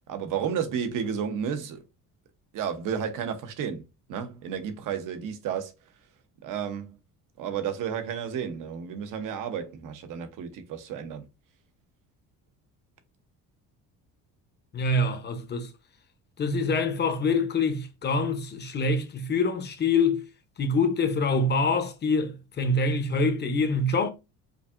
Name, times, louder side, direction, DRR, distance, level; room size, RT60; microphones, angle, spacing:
voice 1, 0.1-1.8 2.5-3.8 4.1-5.7 6.4-7.0 7.4-11.2, right 7 dB, 65° right, 0.9 m, -32 dB
voice 2, 14.7-15.7 16.4-20.2 20.6-24.1, left 3 dB, 30° left, 0.7 m, -25 dB
4.9 x 2.6 x 2.5 m
cardioid pair, 130°, 34 cm